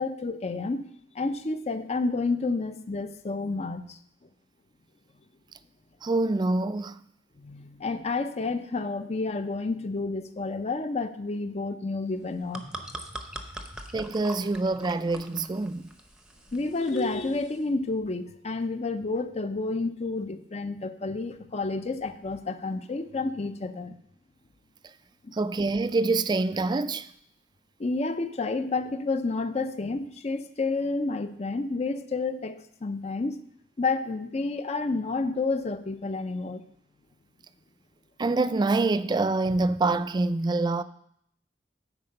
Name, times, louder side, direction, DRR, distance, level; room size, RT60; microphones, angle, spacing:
voice 1, 0.0-4.0 7.4-12.6 16.5-23.9 25.2-25.3 27.8-33.4 33.8-36.6, left 3 dB, 35° left, 0.6 m, -30 dB
voice 2, 6.0-7.0 13.9-15.9 25.3-27.1 38.2-40.8, right 3 dB, 25° right, 0.3 m, -26 dB
sound 1, 12.2-17.6, right 1 dB, 5° right, 0.7 m, -43 dB
9.7 x 4.5 x 6.5 m
head